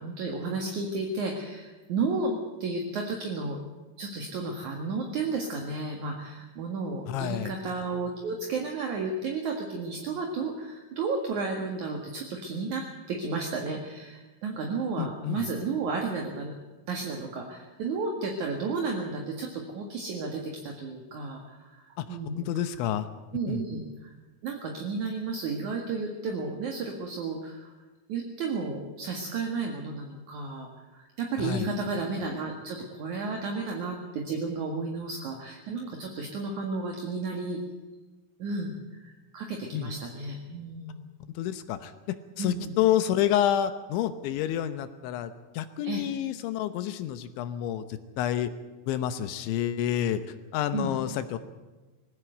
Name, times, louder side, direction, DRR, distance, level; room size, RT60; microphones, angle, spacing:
voice 1, 0.0-2.3 2.6-3.6 4.0-16.5 16.9-22.4 23.3-24.1 24.4-27.7 28.1-37.6 38.4-41.0 42.4-42.7 45.8-46.0 50.7-50.9, right 3 dB, 55° right, 1 dB, 2.5 m, -33 dB
voice 2, 7.1-7.5 15.0-15.4 22.0-22.1 22.4-23.1 23.5-23.6 31.4-31.7 39.7-39.9 41.4-48.5 48.9-50.2 50.5-51.4, left 11 dB, 75° left, 11 dB, 3.1 m, -29 dB
20.5 x 16.5 x 8.0 m, 1.2 s
omnidirectional pair, 5.7 m